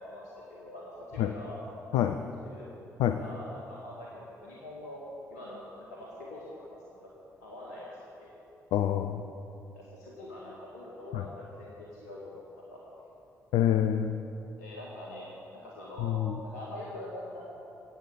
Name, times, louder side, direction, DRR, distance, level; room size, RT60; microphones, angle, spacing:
voice 1, 0.0-1.6 2.2-2.7 3.2-5.0 5.3-6.8 7.0-7.1 7.4-8.3 9.7-12.4 12.7-12.8 14.6-15.3 15.6-17.4, left 1 dB, 75° left, -5 dB, 1.8 m, -44 dB
voice 2, 8.7-9.2 11.1-11.2 13.5-14.2 16.0-16.4, left 10 dB, 60° left, 7 dB, 0.6 m, -26 dB
17.0 x 8.3 x 7.4 m, 2.8 s
figure-of-eight pair, 40°, 8 cm